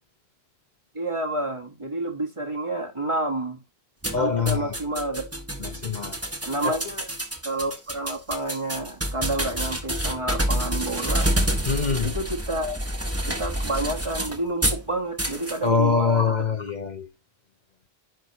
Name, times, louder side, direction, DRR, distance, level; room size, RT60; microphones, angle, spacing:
voice 1, 0.9-3.6 4.1-5.2 6.4-7.1 7.4-11.3 12.0-12.8 13.3-16.2, right 1 dB, 30° right, 1.6 m, -29 dB
sound 1, 4.0-14.8 15.2-15.6, right 1 dB, 15° right, 1.3 m, -28 dB
voice 2, 4.1-4.7 5.6-6.1 11.7-12.1 15.6-17.1, left 5 dB, 45° left, 0.9 m, -24 dB
10.5 x 6.1 x 3.0 m
omnidirectional pair, 1.1 m